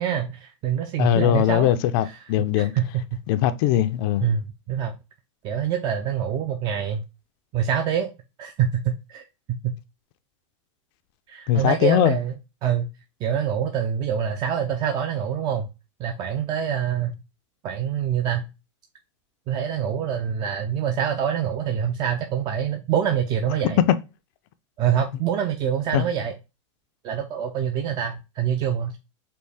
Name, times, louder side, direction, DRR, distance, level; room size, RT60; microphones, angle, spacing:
voice 1, 0.0-1.7 2.0-2.1 2.6-3.0 4.2-4.9 5.4-7.0 7.5-8.1 8.4-9.2 9.5-9.7 11.3-12.3 12.6-12.9 13.2-15.7 16.0-17.2 17.6-18.4 19.5-23.8 24.8-26.3 27.0-29.0, right 8 dB, 25° right, 0.4 m, -25 dB
voice 2, 1.0-2.7 3.3-4.3 11.5-12.2 23.8-24.0 25.9-26.0, left 12 dB, 45° left, 0.4 m, -20 dB
4.4 x 2.7 x 3.3 m
supercardioid pair, 150°, 16 cm